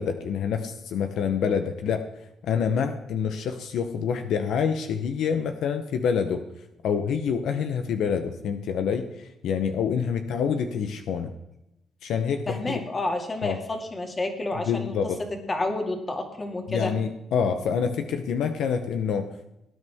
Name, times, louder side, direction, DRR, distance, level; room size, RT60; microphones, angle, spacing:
voice 1, 0.0-2.1 2.4-6.4 6.8-11.3 12.0-12.8 13.4-13.6 14.7-15.2 16.7-19.3, left 6 dB, 75° left, 7 dB, 0.8 m, -27 dB
voice 2, 12.5-14.9 15.5-16.9, left 2 dB, 25° left, 3 dB, 2.3 m, -29 dB
18.0 x 9.7 x 3.6 m, 0.88 s
cardioid pair, 90°, 0 cm